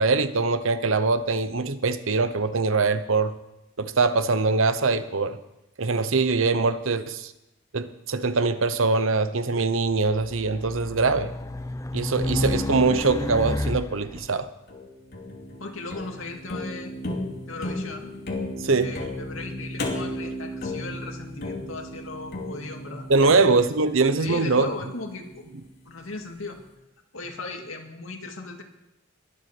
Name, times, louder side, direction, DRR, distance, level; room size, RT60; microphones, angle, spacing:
voice 1, 0.0-3.3 3.8-5.4 5.8-7.3 7.7-11.3 11.9-14.5 18.6-18.9 23.1-24.7, right 3 dB, 75° right, 12 dB, 0.9 m, -23 dB
Race car auto racing, 9.9-14.3, left 1 dB, 15° left, 0.4 m, -30 dB
sound 1, 14.7-25.9, left 1 dB, 50° left, 2.6 m, -35 dB
voice 2, 15.6-16.9 17.5-18.1 18.8-23.4 24.2-25.4 25.9-26.6 27.1-28.6, left 3 dB, 80° left, 3 dB, 2.3 m, -37 dB
21.5 x 8.1 x 6.1 m, 0.93 s
head